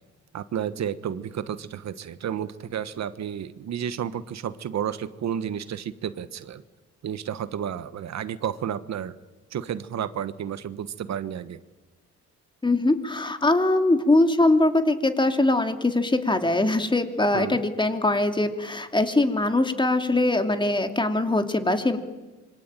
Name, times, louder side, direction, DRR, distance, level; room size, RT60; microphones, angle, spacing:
voice 1, 0.3-6.6 7.0-9.2 9.5-11.6 17.3-17.6, right 9 dB, 60° right, 13 dB, 1.3 m, -31 dB
voice 2, 12.6-22.0, left 2 dB, 15° left, 6 dB, 2.8 m, -22 dB
26.5 x 24.0 x 9.1 m, 1.2 s
cardioid pair, 90°, 30 cm